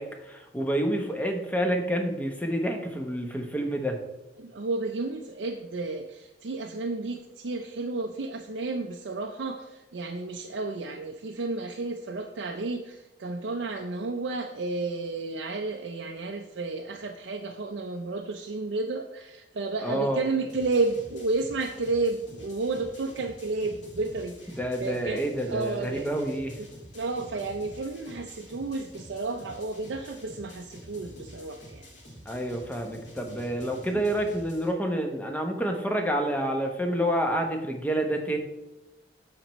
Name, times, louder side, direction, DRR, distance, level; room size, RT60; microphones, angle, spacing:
voice 1, 0.0-4.0 19.8-20.2 24.6-26.6 32.3-38.4, right 1 dB, 10° left, 3 dB, 0.8 m, -28 dB
voice 2, 4.4-26.1 26.6-26.7 26.9-32.1 33.9-34.0, right 3 dB, 85° right, 2 dB, 0.5 m, -32 dB
sound 1, 20.5-34.7, equal, 80° left, 2.2 m, -48 dB
13.0 x 4.4 x 3.0 m, 0.97 s
head